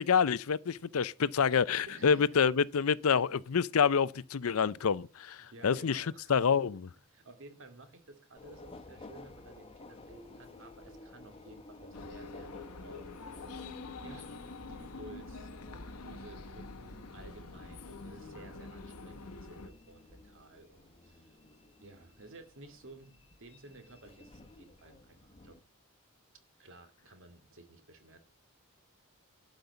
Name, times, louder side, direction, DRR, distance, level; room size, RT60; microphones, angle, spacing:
voice 1, 0.0-6.0 6.3-6.8, left 6 dB, 65° left, 0.5 m, -27 dB
voice 2, 1.8-2.3 5.4-6.4 7.1-12.5 12.8-13.7 14.0-15.5 15.9-21.4 21.8-25.6 26.6-28.2, right 2 dB, 60° right, 2.4 m, -54 dB
Subway metro underground, 8.4-25.6, left 2 dB, 25° left, 1.1 m, -53 dB
sound 1, 11.9-19.7, left 3 dB, 90° left, 1.1 m, -46 dB
12.0 x 5.3 x 8.2 m
head